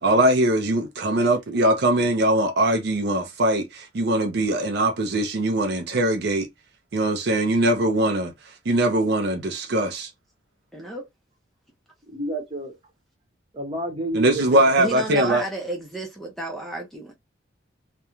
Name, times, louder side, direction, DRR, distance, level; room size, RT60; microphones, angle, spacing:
voice 1, 0.0-6.5 6.9-8.3 8.7-10.1 14.1-15.4, right 1 dB, 55° right, 0.4 m, -21 dB
voice 2, 10.7-11.1 14.8-17.1, right 2 dB, ahead, 0.4 m, -32 dB
voice 3, 12.1-12.7 13.5-14.7, right 1 dB, 25° right, 1.0 m, -30 dB
2.4 x 2.1 x 2.9 m
head